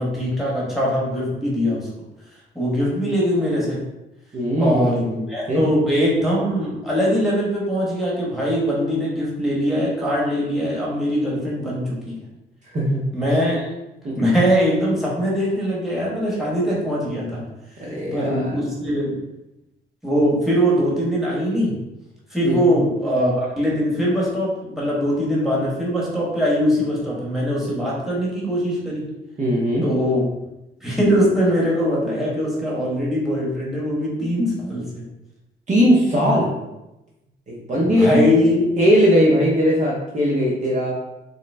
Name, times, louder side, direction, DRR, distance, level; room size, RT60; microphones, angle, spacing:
voice 1, 0.0-1.9 2.5-3.8 4.6-12.2 13.1-13.7 14.1-17.4 18.1-19.2 20.0-21.7 22.3-29.0 29.8-30.2 30.8-35.0 37.7-38.6, equal, ahead, -6 dB, 1.3 m, -21 dB
voice 2, 4.3-5.0 5.5-5.6 12.7-13.0 14.0-14.1 17.8-18.5 22.4-22.8 29.4-29.9 35.7-36.5 37.5-38.3 38.8-40.9, equal, 40° right, -4 dB, 0.8 m, -19 dB
3.7 x 2.1 x 3.3 m, 0.94 s
cardioid pair, 90°, 20 cm